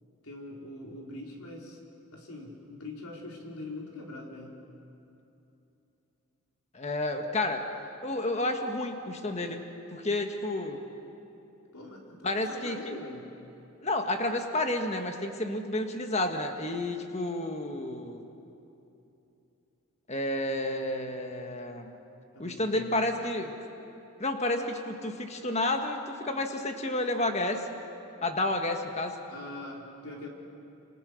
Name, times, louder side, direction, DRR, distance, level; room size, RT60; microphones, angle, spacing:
voice 1, 0.2-1.8 2.1-4.6 11.7-13.3 22.3-22.8 29.3-30.3, left 2 dB, 80° left, -1 dB, 4.2 m, -43 dB
voice 2, 6.7-7.6 8.0-9.6 9.9-10.8 12.2-13.0 13.8-18.3 20.1-22.0 22.4-23.5 24.2-27.7 28.2-29.2, left 1 dB, 30° left, 5 dB, 1.6 m, -30 dB
28.0 x 26.0 x 6.5 m, 2.9 s
head